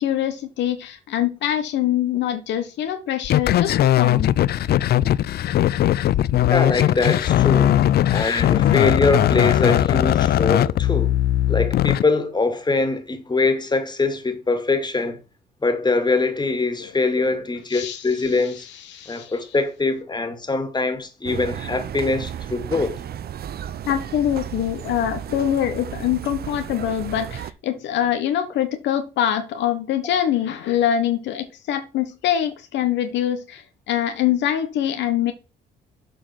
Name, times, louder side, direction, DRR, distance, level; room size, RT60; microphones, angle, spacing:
voice 1, 0.0-4.3 8.5-8.7 17.7-18.3 18.9-19.3 23.8-35.3, left 10 dB, 80° left, 1.1 m, -24 dB
sound 1, 3.2-12.0, left 12 dB, 60° left, 0.4 m, -19 dB
voice 2, 6.5-7.8 8.1-11.1 11.5-15.2 15.6-18.7 19.1-23.0, left 3 dB, 25° left, 2.2 m, -23 dB
sound 2, 21.3-27.5, right 10 dB, 60° right, 0.7 m, -33 dB
7.4 x 4.5 x 6.0 m
supercardioid pair, 70°, 18 cm